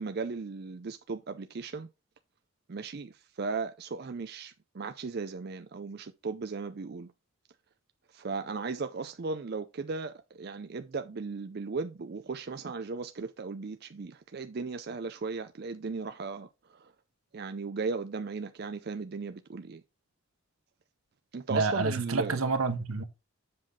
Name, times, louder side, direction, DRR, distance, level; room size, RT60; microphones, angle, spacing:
voice 1, 0.0-1.9 2.7-7.1 8.1-16.9 17.3-19.8 21.3-22.4, right 4 dB, 50° right, 0.4 m, -36 dB
voice 2, 21.5-23.0, right 3 dB, 85° right, 1.2 m, -28 dB
7.6 x 5.8 x 3.6 m
head